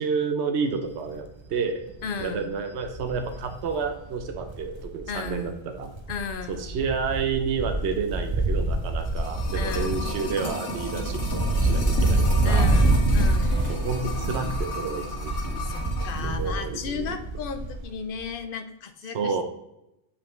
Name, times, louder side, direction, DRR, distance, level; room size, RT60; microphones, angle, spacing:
voice 1, 0.0-1.8 2.2-5.9 6.5-12.7 13.7-15.6 16.2-17.2 19.1-19.4, right 5 dB, 70° right, 6 dB, 1.0 m, -30 dB
Wind, 0.9-1.2 1.5-1.6 1.9-5.5 5.8-17.9 18.2-18.3, right 2 dB, 40° right, 0.4 m, -26 dB
voice 2, 2.0-2.5 5.1-5.6 6.1-6.8 9.5-10.0 12.4-13.7 15.6-19.4, left 6 dB, 55° left, 8 dB, 0.8 m, -35 dB
sound 1, 8.8-16.2 16.5-16.6, left 1 dB, 75° left, 1.9 m, -33 dB
8.4 x 5.1 x 3.1 m, 0.86 s
omnidirectional pair, 1.2 m